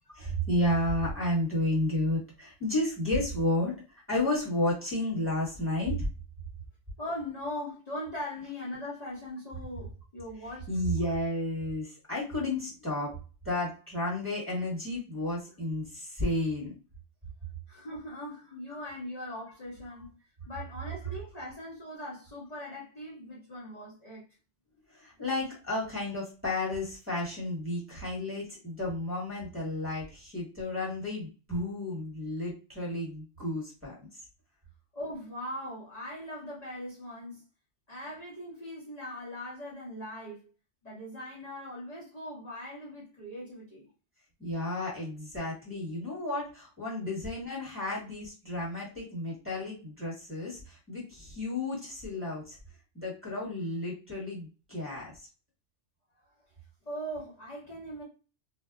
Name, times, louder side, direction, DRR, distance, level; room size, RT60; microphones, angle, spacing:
voice 1, 0.1-6.1 10.7-13.2 13.4-16.7 24.9-34.2 44.4-52.6 52.9-55.3, left 1 dB, 10° right, 1.2 m, -32 dB
voice 2, 7.0-10.7 17.7-20.1 20.5-24.2 34.9-37.4 37.9-40.5 40.8-43.9 56.9-58.0, left 1 dB, 40° left, 0.9 m, -40 dB
2.6 x 2.1 x 2.4 m
omnidirectional pair, 1.2 m